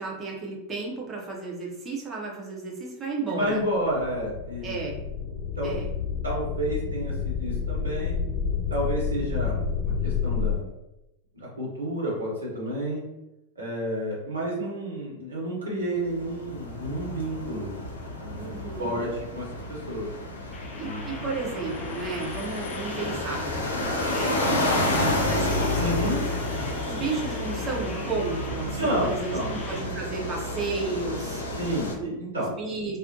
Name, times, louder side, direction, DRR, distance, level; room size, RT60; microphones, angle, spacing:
voice 1, 0.0-3.6 4.6-5.0 5.6-5.9 18.4-19.1 20.8-23.8 24.1-25.8 26.2-26.5 26.8-31.4 32.0-33.0, right 3 dB, 25° right, -2 dB, 0.7 m, -33 dB
voice 2, 3.3-4.8 5.6-5.7 6.2-8.1 8.7-10.7 11.3-13.0 13.6-17.7 18.2-18.5 18.8-20.1 20.8-21.2 25.8-26.2 28.7-29.5 31.5-32.5, equal, 75° right, -5 dB, 0.9 m, -30 dB
sound 1, 3.8-10.5, left 6 dB, 45° left, 0.9 m, -29 dB
sound 2, 16.0-31.9, left 1 dB, 70° left, 0.4 m, -30 dB
sound 3, 20.5-29.8, left 2 dB, 15° left, 0.6 m, -40 dB
2.4 x 2.1 x 2.6 m, 0.94 s
figure-of-eight pair, 90°, 0 cm